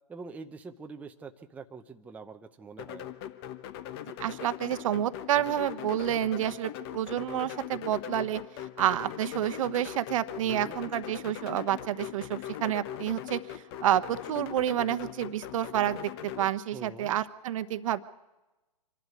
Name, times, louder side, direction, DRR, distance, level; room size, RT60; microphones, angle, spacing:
voice 1, 0.1-3.1 10.4-10.8 16.7-17.2, right 4 dB, 5° right, 5 dB, 0.7 m, -44 dB
sound 1, 2.8-16.5, left 11 dB, 35° left, 1.0 m, -40 dB
voice 2, 4.2-8.4 8.8-18.0, right 11 dB, 50° right, 13 dB, 1.0 m, -29 dB
25.5 x 12.0 x 9.5 m, 1.1 s
hypercardioid pair, 125°, 21 cm